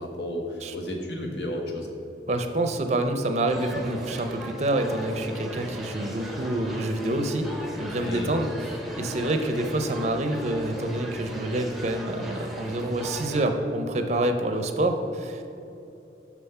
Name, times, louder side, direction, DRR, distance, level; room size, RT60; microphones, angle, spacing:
voice 1, 0.0-1.9 8.0-8.4, left 1 dB, 75° left, 1 dB, 1.1 m, -32 dB
voice 2, 2.3-7.5 7.8-15.6, right 1 dB, 40° right, 6 dB, 0.5 m, -27 dB
sound 1, 3.5-13.4, right 1 dB, ahead, 0.7 m, -37 dB
6.0 x 5.7 x 5.5 m, 2.9 s
head